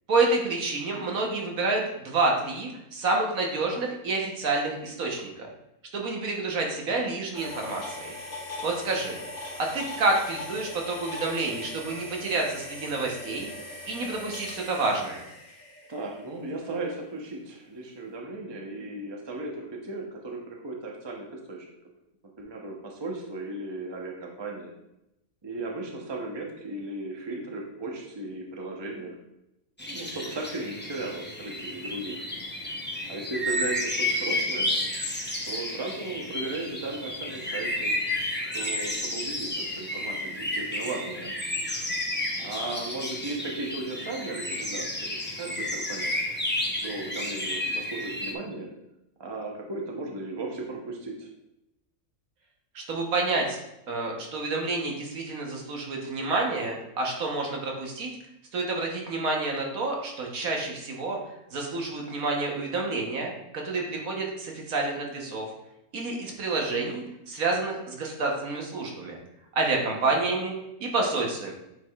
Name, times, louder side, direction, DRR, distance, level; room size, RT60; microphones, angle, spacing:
voice 1, 0.1-5.3 5.9-8.1 8.6-9.1 9.6-13.5 13.9-15.2 52.7-53.6 53.9-58.1 58.5-61.2 61.5-65.5 65.9-69.2 69.5-70.5 70.8-71.5, right 3 dB, 70° right, 0 dB, 1.5 m, -28 dB
sound 1, 7.3-16.3, left 1 dB, 70° left, 2.3 m, -40 dB
voice 2, 15.9-21.7 22.4-24.8 25.4-29.2 29.9-32.2 33.1-34.8 35.5-37.9 38.5-41.3 42.3-46.2 46.8-48.7 49.2-51.3, right 2 dB, 25° right, 0 dB, 0.7 m, -36 dB
sound 2, 29.8-48.3, left 1 dB, 15° left, 0.4 m, -31 dB
8.3 x 4.8 x 2.4 m, 0.87 s
omnidirectional pair, 1.6 m